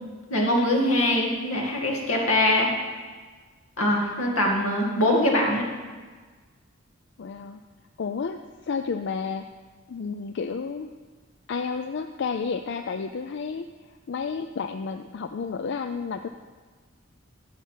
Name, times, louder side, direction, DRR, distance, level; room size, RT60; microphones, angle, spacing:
voice 1, 0.3-2.7 3.8-5.6, left 1 dB, 85° left, -1 dB, 2.1 m, -23 dB
voice 2, 7.2-7.6 8.0-9.4 9.9-10.9 11.5-13.7 14.1-16.3, left 5 dB, 55° left, 7 dB, 0.4 m, -31 dB
11.0 x 5.7 x 7.5 m, 1.4 s
head